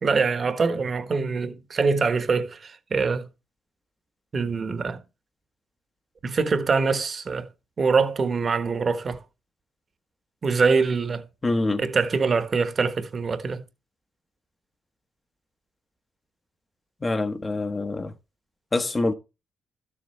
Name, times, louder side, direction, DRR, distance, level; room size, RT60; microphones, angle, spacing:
voice 1, 0.0-3.3 4.3-5.0 6.2-7.5 7.8-9.2 10.4-11.2 11.8-13.6, right 4 dB, 40° right, 1.3 m, -24 dB
voice 2, 11.4-11.8 17.0-18.1 18.7-19.1, left 2 dB, 25° left, 1.1 m, -25 dB
12.5 x 7.3 x 3.3 m
cardioid pair, 90°, 0 cm